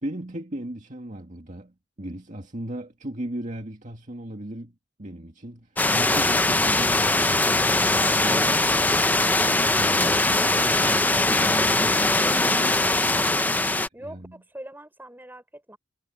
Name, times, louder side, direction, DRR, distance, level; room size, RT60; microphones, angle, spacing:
voice 1, 0.0-8.7 9.4-13.4 14.0-14.4, right 1 dB, 40° right, 2.0 m, -37 dB
sound 1, 5.8-13.9, left 2 dB, 10° left, 0.7 m, -21 dB
voice 2, 13.9-15.8, right 1 dB, 10° right, 6.1 m, -42 dB
head